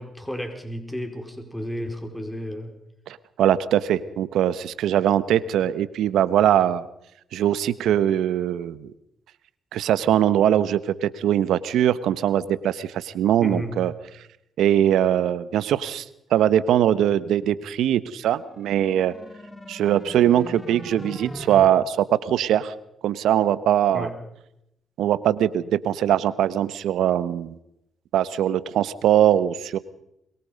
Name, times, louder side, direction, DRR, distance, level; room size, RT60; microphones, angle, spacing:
voice 1, 0.0-2.8 13.4-13.8 23.9-24.2, equal, 5° left, 5 dB, 4.9 m, -32 dB
voice 2, 3.1-6.9 7.3-8.9 9.7-13.9 14.6-16.0 16.3-19.1 19.7-22.7 23.0-24.1 25.0-27.6 28.1-29.8, right 11 dB, 80° right, 15 dB, 1.2 m, -21 dB
sound 1, 18.4-21.7, equal, 20° left, 3.5 m, -40 dB
23.5 x 22.5 x 5.3 m, 0.81 s
supercardioid pair, 50°, 0 cm